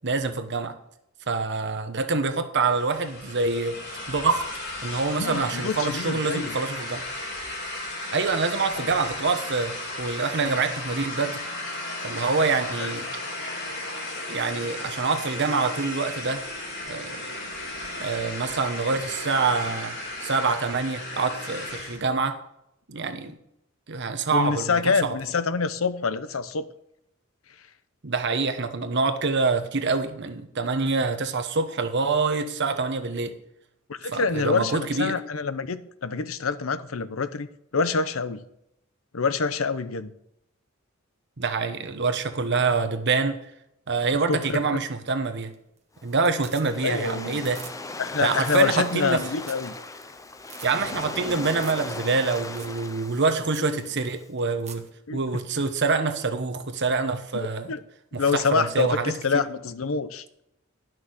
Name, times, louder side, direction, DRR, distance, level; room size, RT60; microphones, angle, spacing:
voice 1, 0.0-0.8 1.3-3.8 4.1-4.4 4.8-7.0 8.1-11.4 12.0-13.1 14.3-16.4 16.9-17.4 18.0-22.4 22.9-23.4 23.9-25.2 28.0-33.3 34.1-35.2 41.4-43.4 43.9-45.5 46.0-47.6 48.2-49.2 50.6-54.8 55.1-57.7 58.1-59.2, right 4 dB, 60° right, 1.1 m, -26 dB
sound 1, 2.7-22.0, left 2 dB, 55° left, 3.5 m, -35 dB
voice 2, 5.2-6.6 8.8-9.0 12.8-12.9 24.3-26.7 33.9-37.5 37.7-38.4 39.1-40.1 44.3-44.6 46.8-47.4 48.0-49.7 55.1-55.2 57.3-57.8 58.1-60.2, left 5 dB, 85° left, 0.8 m, -26 dB
sound 2, 45.2-45.8 46.1-47.0 47.3-47.8 48.0-48.1 48.4-48.7 49.1-49.2 49.4-49.7 50.0-50.1 50.4-50.7 51.5-51.9 52.1-52.2 52.5-52.8 53.1-53.2 53.5-53.7 54.4-54.9 57.1-57.2, right 7 dB, 35° right, 1.3 m, -44 dB
Waves surf, 46.0-54.2, left 3 dB, 15° left, 0.6 m, -38 dB
11.5 x 6.2 x 6.4 m
head